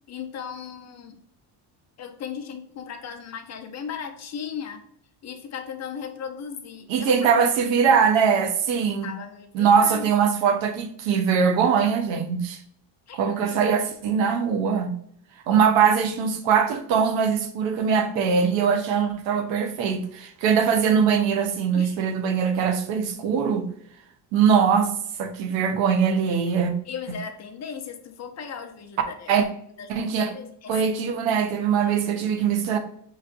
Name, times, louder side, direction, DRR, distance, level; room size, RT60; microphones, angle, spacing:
voice 1, 0.1-1.2 2.0-4.9 5.2-7.3 8.9-10.2 13.1-13.2 13.5-13.7 15.5-15.6 21.7-22.0 26.9-29.5 29.8-30.9 31.8-32.1, left 7 dB, 35° left, 0.6 m, -37 dB
voice 2, 6.9-9.1 9.5-12.6 13.1-14.9 15.5-23.7 24.3-26.7 27.1-27.2 29.3-29.5 29.9-30.3 30.7-32.8, right 6 dB, 80° right, 0.9 m, -22 dB
5.6 x 3.2 x 2.5 m
cardioid pair, 155°, 45 cm